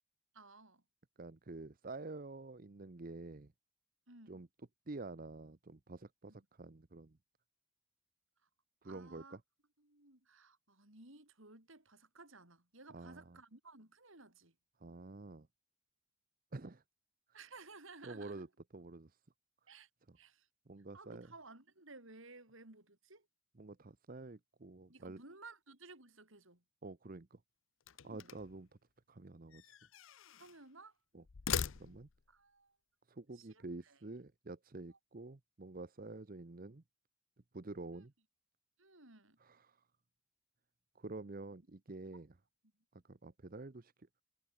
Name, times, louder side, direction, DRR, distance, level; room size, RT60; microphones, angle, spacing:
voice 1, 0.3-0.8 4.1-4.4 6.3-6.4 8.8-9.4 9.8-14.5 17.3-18.5 19.7-19.9 20.2-20.5 20.9-23.3 24.9-26.6 28.0-28.4 30.4-30.9 32.3-32.8 33.3-34.0 34.9-35.0 38.0-38.1 38.8-39.4, right 3 dB, 60° right, 4.6 m, -57 dB
voice 2, 1.2-3.5 4.3-4.5 4.9-7.2 8.8-9.4 12.9-13.4 14.8-15.5 16.5-16.8 17.3-17.4 18.0-18.5 18.7-19.2 20.1-20.2 20.7-21.3 23.6-25.2 26.8-27.4 28.0-28.7 29.1-29.7 31.1-31.2 31.8-32.1 33.1-36.8 37.5-38.1 39.4-39.8 40.9-42.3 43.0-44.1, right 2 dB, 40° right, 0.7 m, -48 dB
sound 1, 27.8-28.6 29.5-30.6 31.2-32.3, left 8 dB, 65° left, 0.6 m, -41 dB
head